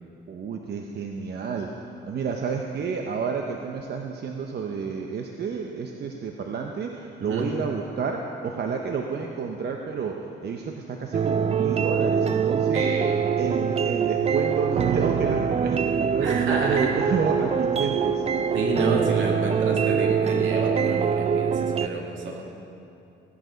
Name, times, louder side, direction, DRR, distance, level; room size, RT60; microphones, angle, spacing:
voice 1, 0.3-12.9 13.4-18.2, right 5 dB, 55° right, 2 dB, 0.8 m, -30 dB
sound 1, 11.1-21.9, right 7 dB, 30° right, 0.4 m, -24 dB
voice 2, 12.7-13.2 16.2-17.0 18.5-22.4, right 2 dB, 75° right, 0 dB, 2.2 m, -29 dB
16.5 x 10.5 x 4.0 m, 2.7 s
cardioid pair, 90°, 20 cm